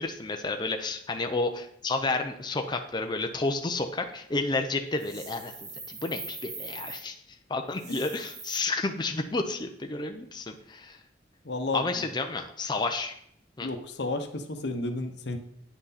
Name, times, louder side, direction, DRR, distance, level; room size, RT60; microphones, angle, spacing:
voice 1, 0.0-5.5 5.9-7.1 7.5-11.0 11.7-13.1 13.6-13.7, left 3 dB, 25° left, 4 dB, 0.6 m, -31 dB
sound 1, 5.0-7.0 7.7-8.6, right 3 dB, 45° right, 2.0 m, -41 dB
voice 2, 11.4-11.8 13.6-15.4, left 2 dB, 75° left, 7 dB, 1.0 m, -32 dB
9.2 x 6.1 x 4.1 m, 0.70 s
head